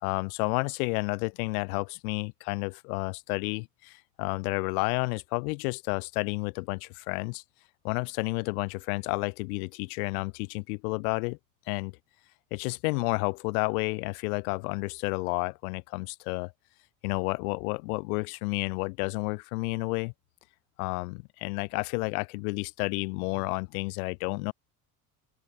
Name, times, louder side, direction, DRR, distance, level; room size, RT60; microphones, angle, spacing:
voice 1, 0.0-7.4 7.8-11.4 11.7-11.9 12.5-16.5 17.0-20.1 20.8-24.5, left 30 dB, 70° left, 4.0 m, -31 dB
open air
hypercardioid pair, 70°, 45 cm